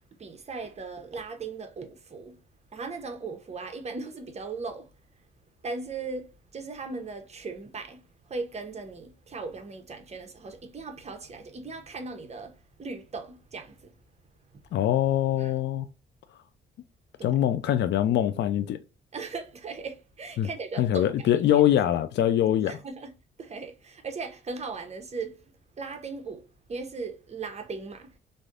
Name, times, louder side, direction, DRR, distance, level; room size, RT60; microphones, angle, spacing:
voice 1, 0.2-2.4 2.7-4.9 5.6-6.3 6.5-8.0 8.3-12.5 12.8-13.9 15.4-15.5 17.2-17.3 19.1-21.5 22.7-23.1 23.4-25.4 25.8-28.2, right 4 dB, 35° right, 0.8 m, -38 dB
voice 2, 14.7-15.9 17.2-18.8 20.4-20.5 20.8-22.8, left 11 dB, 60° left, 0.4 m, -23 dB
3.2 x 2.6 x 2.4 m
cardioid pair, 90°, 20 cm